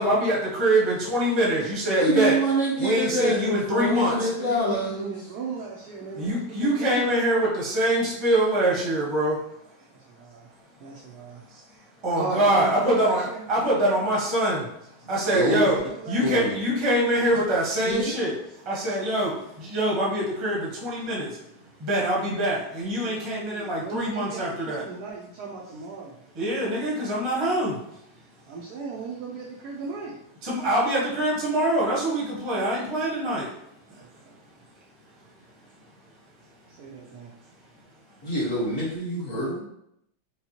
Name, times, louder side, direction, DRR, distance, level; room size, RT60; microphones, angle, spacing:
voice 1, 0.0-2.4 2.8-4.3 6.2-9.4 11.5-14.7 15.1-15.8 16.1-21.5 21.8-24.8 26.3-28.0 30.4-33.5 33.9-34.0, right 1 dB, 20° right, -5 dB, 0.8 m, -24 dB
voice 2, 2.0-5.1 15.3-15.6 16.2-16.6 17.8-18.0 38.2-39.6, right 1 dB, 45° left, -7 dB, 1.6 m, -26 dB
voice 3, 3.1-7.2 10.2-10.5 10.8-11.4 12.1-13.4 15.2-16.5 23.0-26.2 28.5-30.2 34.0-34.2 36.7-37.3, right 4 dB, 70° right, -3 dB, 0.9 m, -37 dB
5.3 x 2.3 x 2.8 m, 0.78 s
omnidirectional pair, 2.2 m